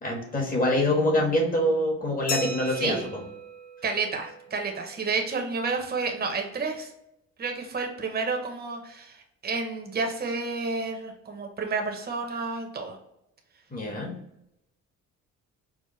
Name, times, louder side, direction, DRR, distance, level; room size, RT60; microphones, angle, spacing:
voice 1, 0.0-3.2 13.7-14.2, left 1 dB, 30° left, 0 dB, 1.3 m, -25 dB
Glass, 2.3-4.7, left 1 dB, 75° left, 1.1 m, -37 dB
voice 2, 3.8-6.9 7.4-13.0, right 4 dB, 30° right, 3 dB, 0.8 m, -30 dB
4.8 x 2.1 x 3.0 m, 0.80 s
cardioid pair, 90°, 30 cm